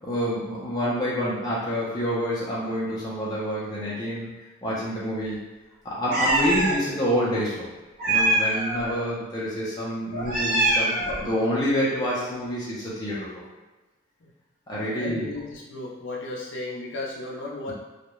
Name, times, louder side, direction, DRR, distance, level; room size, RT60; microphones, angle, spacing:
voice 1, 0.0-4.3 4.6-5.5 5.8-7.7 8.1-10.9 11.2-13.4 14.7-15.3, equal, 20° left, -7 dB, 0.5 m, -27 dB
Meow, 6.1-6.7 8.0-8.9 10.1-11.3, right 2 dB, 45° right, 0.7 m, -23 dB
voice 2, 14.8-17.7, left 2 dB, 70° left, -4 dB, 0.5 m, -35 dB
2.3 x 2.1 x 3.0 m, 1.2 s
head